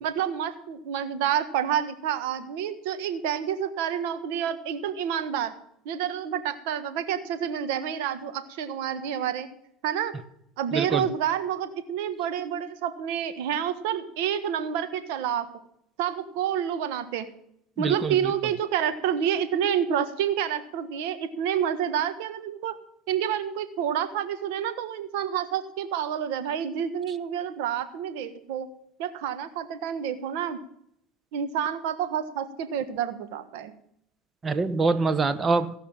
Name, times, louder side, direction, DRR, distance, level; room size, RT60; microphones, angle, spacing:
voice 1, 0.0-5.5 5.8-9.5 9.8-10.1 10.6-15.5 16.0-17.3 17.8-22.8 23.1-28.7 29.0-30.6 31.3-33.7, right 9 dB, 75° right, 10 dB, 1.3 m, -28 dB
voice 2, 10.7-11.1 17.8-18.2 34.4-35.8, right 4 dB, 25° right, 13 dB, 1.0 m, -24 dB
16.0 x 5.7 x 7.1 m, 0.73 s
supercardioid pair, 105°, 0 cm